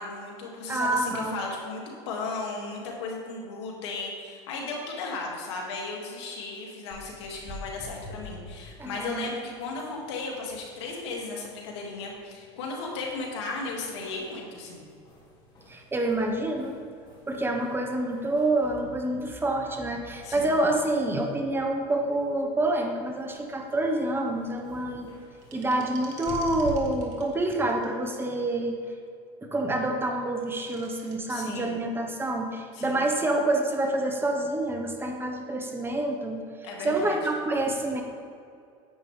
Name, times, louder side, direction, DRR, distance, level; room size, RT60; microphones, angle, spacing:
voice 1, 0.0-14.9 20.2-20.5 31.3-31.8 32.7-33.0 36.6-37.2, left 3 dB, 85° left, -1 dB, 2.2 m, -35 dB
voice 2, 0.7-1.3 8.8-9.3 15.7-16.8 17.3-25.1 25.5-28.8 29.4-36.4 36.8-38.0, right 2 dB, 15° right, 3 dB, 1.1 m, -27 dB
sound 1, 6.9-26.7, left 1 dB, 30° left, 2.5 m, -49 dB
sound 2, 25.4-28.2 30.3-31.2, right 5 dB, 55° right, 2.0 m, -49 dB
10.5 x 8.7 x 3.4 m, 2.4 s
supercardioid pair, 115°, 14 cm